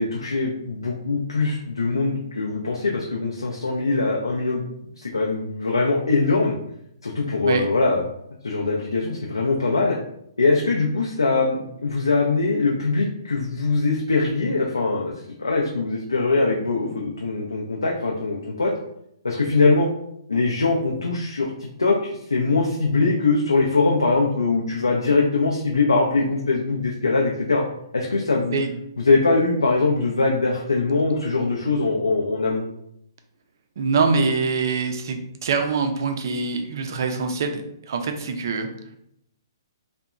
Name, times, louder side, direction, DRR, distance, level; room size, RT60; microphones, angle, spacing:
voice 1, 0.0-4.6 5.0-6.6 7.0-8.0 8.4-10.0 10.4-15.1 15.4-18.7 19.2-19.9 20.3-27.6 27.9-28.6 29.1-32.6, left 3 dB, 80° left, -1 dB, 0.4 m, -22 dB
voice 2, 33.8-38.7, right 4 dB, 50° right, 5 dB, 0.4 m, -24 dB
2.7 x 2.1 x 2.3 m, 0.74 s
figure-of-eight pair, 125°, 2 cm